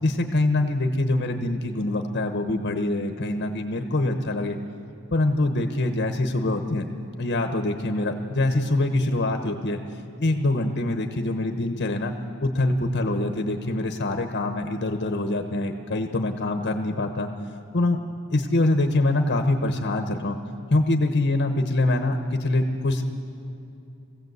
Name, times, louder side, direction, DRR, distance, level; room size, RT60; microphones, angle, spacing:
voice 1, 0.0-4.6 5.1-6.9 7.2-9.8 10.2-12.1 12.4-17.3 17.7-18.0 18.3-20.4 20.7-23.0, left 2 dB, 50° left, 5 dB, 1.1 m, -24 dB
21.5 x 16.0 x 8.0 m, 2.8 s
head